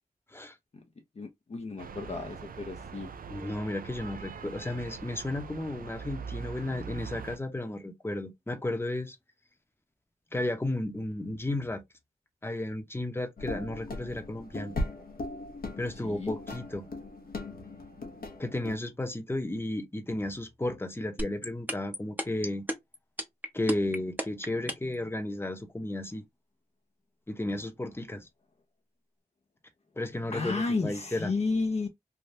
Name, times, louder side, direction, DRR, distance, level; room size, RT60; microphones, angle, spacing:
voice 1, 1.2-3.1 16.0-16.3 30.3-31.9, left 3 dB, 45° left, 0.6 m, -32 dB
sound 1, 1.8-7.4, right 6 dB, 65° right, 0.4 m, -42 dB
voice 2, 3.3-9.2 10.3-11.8 12.4-14.8 15.8-16.9 18.4-22.6 23.5-26.2 27.3-28.3 30.0-31.3, left 1 dB, 15° left, 0.8 m, -33 dB
sound 2, 13.4-18.8, left 2 dB, 75° left, 0.8 m, -38 dB
sound 3, 21.2-25.0, equal, 10° right, 0.8 m, -31 dB
3.4 x 2.2 x 2.6 m
cardioid pair, 60°, 16 cm